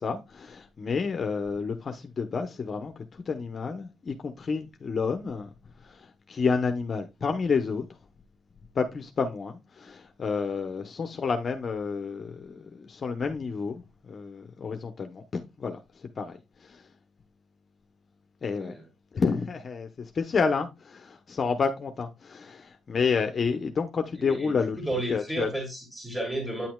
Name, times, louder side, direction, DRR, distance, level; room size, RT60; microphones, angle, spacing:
voice 1, 0.0-5.5 5.8-7.8 8.7-16.8 18.4-18.7 19.1-24.8 25.1-25.5, left 5 dB, 45° left, 0.9 m, -30 dB
voice 2, 24.2-26.7, right 1 dB, 5° right, 2.5 m, -33 dB
9.4 x 5.9 x 2.3 m
cardioid pair, 90°, 0 cm